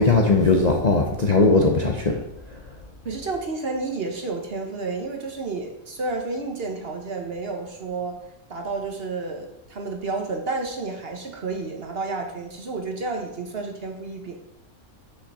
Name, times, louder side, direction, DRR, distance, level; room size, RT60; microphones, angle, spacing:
voice 1, 0.0-2.2, left 3 dB, 40° left, 1 dB, 0.7 m, -19 dB
voice 2, 3.0-8.2 8.5-14.3, right 3 dB, 45° right, 3 dB, 1.2 m, -30 dB
6.6 x 6.6 x 4.8 m, 0.86 s
omnidirectional pair, 1.5 m